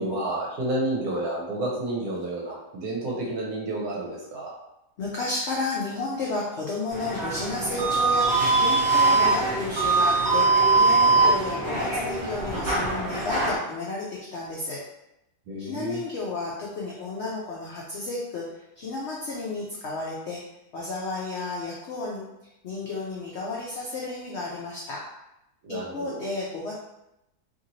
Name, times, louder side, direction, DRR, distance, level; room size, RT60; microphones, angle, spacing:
voice 1, 0.0-4.5 15.5-16.0 25.6-26.3, right 1 dB, 70° right, -3 dB, 1.1 m, -30 dB
voice 2, 5.0-14.8 15.6-18.4 18.8-20.4 20.7-22.2 22.6-25.0 25.7-26.7, left 2 dB, 70° left, -4 dB, 0.6 m, -32 dB
sound 1, 6.9-13.6, right 3 dB, 40° right, 0.7 m, -22 dB
2.8 x 2.8 x 2.6 m, 0.88 s
omnidirectional pair, 1.7 m